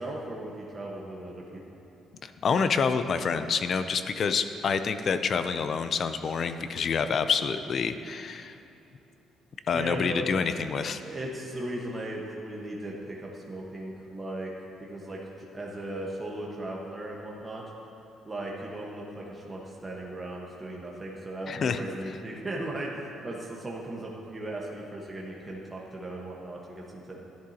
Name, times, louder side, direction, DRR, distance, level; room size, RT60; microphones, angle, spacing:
voice 1, 0.0-1.4 9.7-10.2 11.0-14.5 14.8-17.6 18.2-27.2, right 1 dB, 20° right, -3 dB, 1.3 m, -37 dB
voice 2, 2.2-8.5 9.7-11.0 21.5-21.8, left 5 dB, 50° left, 10 dB, 0.5 m, -27 dB
13.0 x 10.5 x 2.9 m, 2.8 s
cardioid pair, 85°, 0 cm